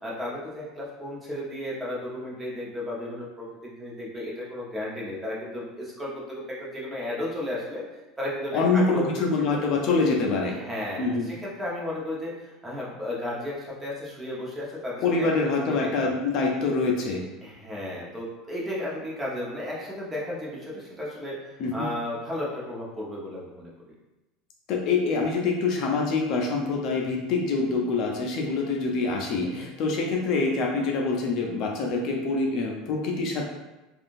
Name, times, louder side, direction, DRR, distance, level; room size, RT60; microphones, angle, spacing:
voice 1, 0.0-7.8 8.2-9.1 9.6-9.7 10.4-15.3 15.6-16.1 17.4-21.4 21.7-23.9 29.4-29.7, left 1 dB, 15° right, -5 dB, 0.9 m, -34 dB
voice 2, 8.5-10.6 11.0-11.3 15.0-17.2 21.6-21.9 24.7-33.5, left 3 dB, 55° left, 0 dB, 0.5 m, -25 dB
3.5 x 2.4 x 2.6 m, 1.0 s
supercardioid pair, 115°, 0 cm